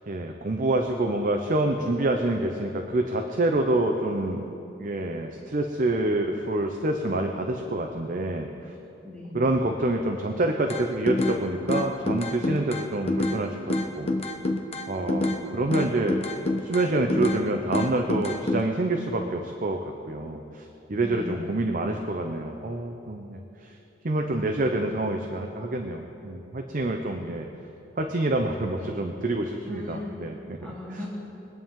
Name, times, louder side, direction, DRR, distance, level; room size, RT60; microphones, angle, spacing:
voice 1, 0.1-4.5 4.8-8.7 9.3-14.1 14.9-16.2 16.6-23.7 24.0-27.5 28.0-30.6 30.9-31.0, right 2 dB, 45° right, 3 dB, 0.7 m, -27 dB
voice 2, 9.0-9.4 21.0-21.5 29.6-30.1 30.6-31.1, left 1 dB, 5° left, -7 dB, 2.5 m, -37 dB
sound 1, 10.7-11.4 11.7-13.4 13.7-15.4 15.7-17.4 17.7-18.6, left 2 dB, 35° left, 1.0 m, -26 dB
23.0 x 8.9 x 3.7 m, 2.9 s
head